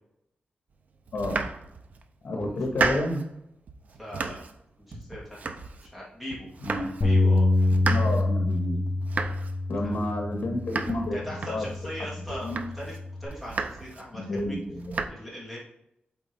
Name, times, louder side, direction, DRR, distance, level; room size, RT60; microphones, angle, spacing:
voice 1, 1.1-1.4 2.2-3.2 6.6-6.9 7.9-9.0 9.7-11.2 11.5-11.7 12.3-12.6 14.1-15.0, left 1 dB, 65° left, 2 dB, 1.8 m, -30 dB
Domestic sounds home sounds, 1.1-2.0 2.4-3.3 3.7-4.6 4.9-6.0 6.3-7.1 7.4-11.9 12.3-13.0 13.3-14.0 14.4-15.1, right 4 dB, 50° right, 0.6 m, -34 dB
voice 2, 3.9-4.4 4.9-5.5 5.8-6.5 6.8-7.5 9.8-10.0 11.1-12.9 13.2-14.6 15.1-15.6, equal, 5° right, -6 dB, 2.7 m, -39 dB
Bass guitar, 7.0-13.3, left 2 dB, 30° left, 1.2 m, -26 dB
7.8 x 4.2 x 3.5 m, 0.78 s
wide cardioid pair, 170°, 3 cm